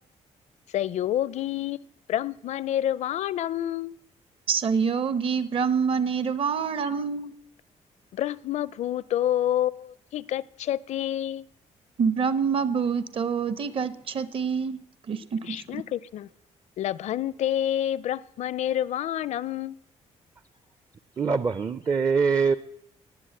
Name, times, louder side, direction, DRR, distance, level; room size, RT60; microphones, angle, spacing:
voice 1, 0.7-1.8 2.1-4.0 6.9-7.0 8.1-11.5 15.4-16.3 16.8-19.8, left 11 dB, 65° left, 20 dB, 0.5 m, -28 dB
voice 2, 4.5-7.3 12.0-14.8 15.1-15.8, right 6 dB, 45° right, 14 dB, 0.9 m, -26 dB
voice 3, 21.2-22.6, right 5 dB, 25° right, 14 dB, 0.5 m, -23 dB
19.0 x 8.0 x 7.8 m, 0.78 s
cardioid pair, 145°, 13 cm